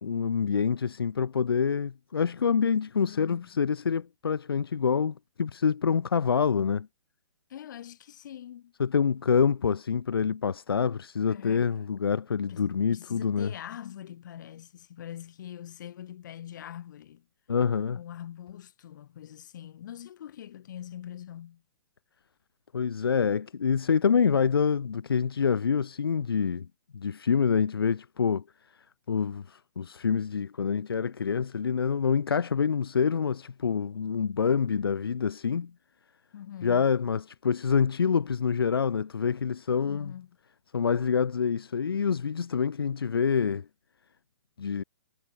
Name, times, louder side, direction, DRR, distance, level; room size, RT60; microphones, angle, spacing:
voice 1, 0.0-6.9 8.8-13.5 17.5-18.0 22.7-26.7 26.9-28.4 29.1-35.7 36.6-40.1 40.7-43.7 44.6-44.8, left 6 dB, 80° left, 0.5 m, -26 dB
voice 2, 3.0-3.5 7.5-8.7 11.3-11.7 12.5-17.3 17.9-21.6 36.3-36.9 39.8-40.3, left 11 dB, 55° left, 7.7 m, -43 dB
hypercardioid pair, 130°, 12 cm